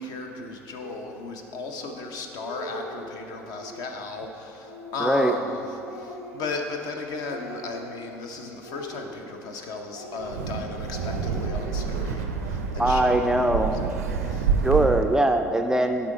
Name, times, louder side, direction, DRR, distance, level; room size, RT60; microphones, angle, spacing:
voice 1, 0.0-5.6 5.9-13.8 14.2-14.5, left 3 dB, 50° left, 4 dB, 0.7 m, -35 dB
Speech, 0.8-1.1 1.8-1.9 2.2-3.1 3.5-4.1 4.6-6.9 7.2-8.1 8.6-9.6 9.9-10.6 10.9-12.1, left 1 dB, 85° left, 0.7 m, -41 dB
voice 2, 5.0-5.3 12.8-13.8 14.6-16.1, right 1 dB, 5° right, 5 dB, 0.3 m, -22 dB
Wind, 10.2-15.2, right 6 dB, 80° right, 0.4 m, -28 dB
10.5 x 3.7 x 3.8 m, 2.9 s
figure-of-eight pair, 60°, 8 cm